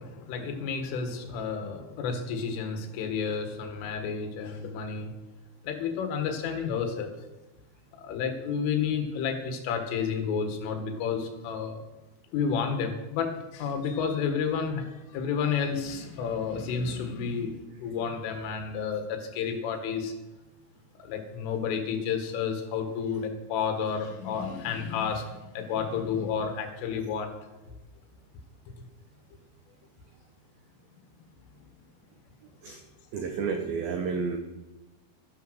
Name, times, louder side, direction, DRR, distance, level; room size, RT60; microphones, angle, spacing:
voice 1, 0.0-5.1 5.6-7.1 8.0-11.8 12.3-17.5 17.8-20.1 21.0-27.3, left 6 dB, 80° left, 5 dB, 4.1 m, -31 dB
voice 2, 33.1-34.4, right 5 dB, 80° right, 4 dB, 2.1 m, -30 dB
13.5 x 10.5 x 6.4 m, 1.1 s
omnidirectional pair, 5.8 m